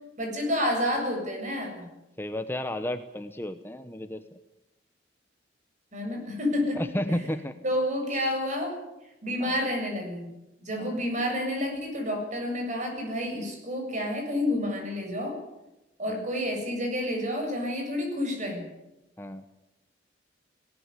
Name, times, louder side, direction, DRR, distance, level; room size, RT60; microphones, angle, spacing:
voice 1, 0.2-1.8 5.9-7.1 7.6-8.8 9.2-10.3 10.6-15.4 16.0-18.7, left 1 dB, 40° right, 3 dB, 7.4 m, -29 dB
voice 2, 2.2-4.2 6.7-7.5 8.1-8.3 9.4-9.6 10.8-11.0 16.1-16.3 19.2-19.4, left 1 dB, 10° left, 9 dB, 0.9 m, -33 dB
19.5 x 18.5 x 9.8 m, 0.97 s
head